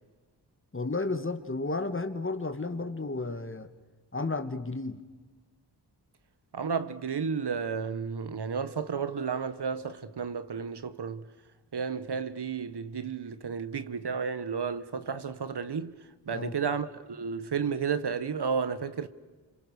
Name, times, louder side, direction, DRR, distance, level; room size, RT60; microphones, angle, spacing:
voice 1, 0.7-3.7 4.1-5.0 16.3-16.6, left 3 dB, 30° left, 1.9 m, -32 dB
voice 2, 6.5-11.2 11.7-15.9 16.3-19.1, right 6 dB, 70° right, 1.4 m, -32 dB
28.5 x 26.5 x 6.6 m
cardioid pair, 55°, 42 cm